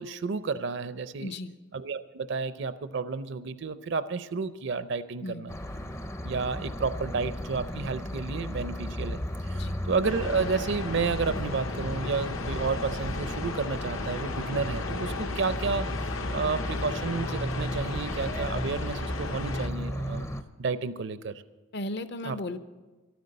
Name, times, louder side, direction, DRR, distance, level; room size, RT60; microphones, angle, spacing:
voice 1, 0.0-1.3 1.7-5.5 6.2-15.9 16.3-20.3 20.6-21.4 22.2-22.4, right 4 dB, 55° right, 14 dB, 0.5 m, -31 dB
voice 2, 1.2-1.5 5.2-5.4 9.5-9.8 21.7-22.6, left 1 dB, 55° left, 12 dB, 0.6 m, -35 dB
sound 1, 5.5-20.4, left 1 dB, 15° left, 0.5 m, -35 dB
sound 2, 10.0-19.7, left 3 dB, 75° left, 0.9 m, -36 dB
12.5 x 9.4 x 7.7 m, 1.2 s
head